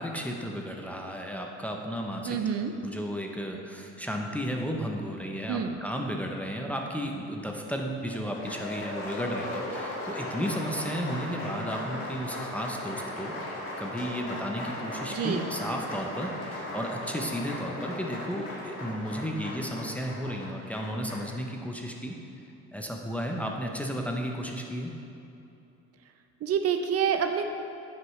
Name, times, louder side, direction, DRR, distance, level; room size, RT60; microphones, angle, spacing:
voice 1, 0.0-2.4 2.8-13.3 13.8-22.1 22.7-24.9, equal, 5° left, 1 dB, 0.5 m, -33 dB
voice 2, 2.2-2.7 5.5-5.8 15.1-15.5 26.4-27.4, right 7 dB, 55° right, 6 dB, 0.5 m, -27 dB
Applause, 8.1-21.3, left 1 dB, 45° left, 1.8 m, -37 dB
9.4 x 6.3 x 3.1 m, 2.8 s
cardioid pair, 130°, 30 cm